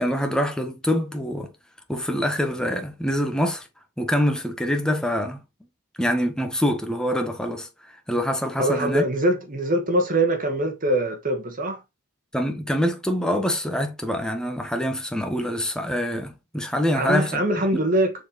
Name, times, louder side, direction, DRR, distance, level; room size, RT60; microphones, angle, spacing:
voice 1, 0.0-1.5 1.9-3.7 4.0-5.4 6.0-7.7 8.1-9.0 12.3-17.4, equal, 5° left, 1.3 m, -25 dB
voice 2, 8.6-11.8 16.9-18.1, right 1 dB, 40° right, 1.6 m, -23 dB
7.1 x 4.5 x 3.2 m
head